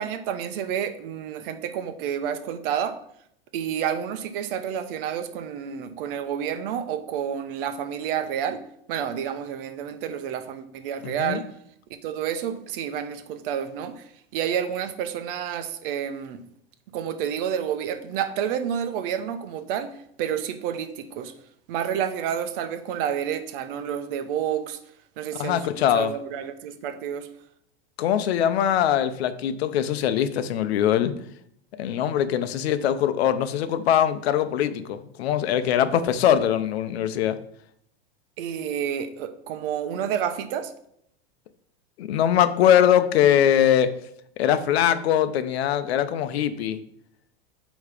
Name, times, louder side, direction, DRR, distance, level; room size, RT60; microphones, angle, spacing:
voice 1, 0.0-3.0 3.5-8.6 8.9-11.5 11.9-16.4 16.9-21.3 21.7-24.8 25.2-27.3 38.4-40.7, right 9 dB, 60° right, 9 dB, 0.9 m, -29 dB
voice 2, 11.0-11.4 25.4-26.1 28.0-31.1 31.8-37.4 42.0-43.9 44.4-46.8, left 10 dB, 85° left, 11 dB, 0.7 m, -22 dB
8.3 x 3.1 x 5.0 m, 0.72 s
supercardioid pair, 140°, 31 cm